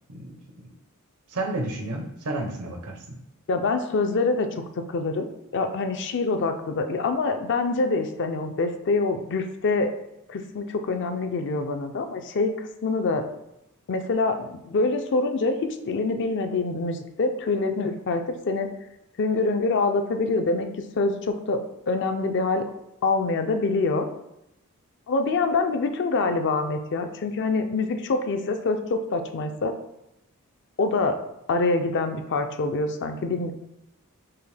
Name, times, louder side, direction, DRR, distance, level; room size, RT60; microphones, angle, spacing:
voice 1, 0.1-0.7 1.3-3.2, right 2 dB, 80° right, 3 dB, 0.8 m, -32 dB
voice 2, 3.5-5.3 5.5-9.9 10.3-13.2 13.9-18.7 19.2-20.7 21.0-22.6 23.0-24.1 25.1-29.7 30.8-31.2 31.5-33.5, left 3 dB, 55° left, 7 dB, 0.4 m, -25 dB
5.6 x 2.1 x 3.3 m, 0.86 s
head